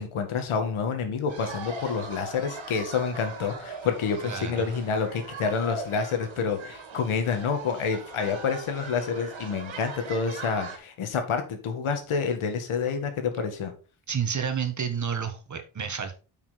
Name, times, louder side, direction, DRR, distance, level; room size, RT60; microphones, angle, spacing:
voice 1, 0.0-13.7, left 5 dB, 80° left, 6 dB, 2.1 m, -28 dB
sound 1, 1.3-10.8, right 3 dB, 70° right, 2.7 m, -40 dB
voice 2, 4.2-4.7 14.1-16.1, right 7 dB, 35° right, 7 dB, 1.5 m, -30 dB
8.7 x 5.9 x 4.2 m, 0.35 s
wide cardioid pair, 135°, 48 cm